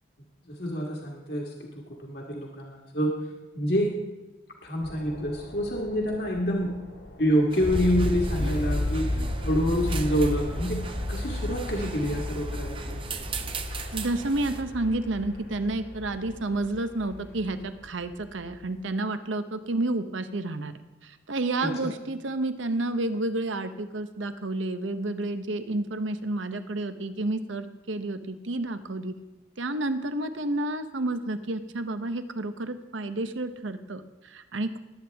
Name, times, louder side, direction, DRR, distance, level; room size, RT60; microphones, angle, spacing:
voice 1, 0.5-3.2 3.6-3.9 4.6-6.7 7.2-10.8 11.1-13.3 21.6-21.9, equal, 55° left, -1 dB, 1.6 m, -27 dB
sound 1, 4.8-18.8, left 1 dB, 80° left, 2.5 m, -33 dB
sound 2, 7.5-14.6, right 5 dB, 25° right, 0.7 m, -40 dB
voice 2, 13.9-20.7 21.0-29.1 29.6-34.8, right 2 dB, 90° right, 10 dB, 0.9 m, -30 dB
20.0 x 8.8 x 3.5 m, 1.1 s
head